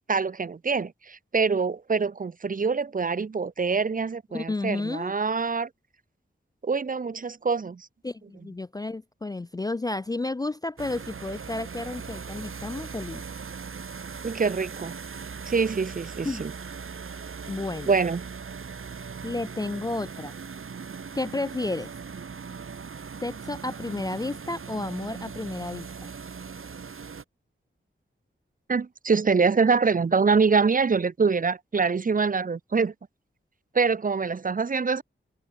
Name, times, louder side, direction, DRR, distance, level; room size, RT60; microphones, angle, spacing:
voice 1, 0.1-5.7 6.6-7.9 14.2-15.0 15.5-16.5 17.9-18.2 28.7-32.9 33.7-35.0, right 5 dB, 40° right, 0.6 m, -25 dB
voice 2, 4.3-5.1 8.0-13.2 16.2-16.4 17.5-17.9 19.2-20.3 21.1-21.9 23.2-26.1, left 2 dB, 20° left, 0.3 m, -32 dB
sound 1, 10.8-27.2, right 5 dB, 80° right, 3.0 m, -39 dB
wide cardioid pair, 95°, 21 cm